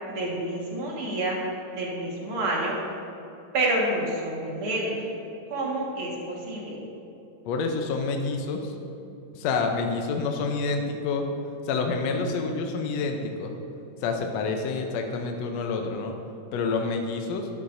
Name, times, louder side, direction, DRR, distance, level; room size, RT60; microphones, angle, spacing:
voice 1, 0.1-1.4 1.7-2.8 3.5-4.9 5.5-6.8, right 2 dB, 45° right, -3 dB, 2.3 m, -28 dB
voice 2, 7.5-8.7 9.3-11.3 11.6-13.6 14.0-16.1 16.5-17.5, left 4 dB, 75° left, 3 dB, 1.6 m, -28 dB
12.5 x 12.0 x 2.7 m, 2.9 s
omnidirectional pair, 3.9 m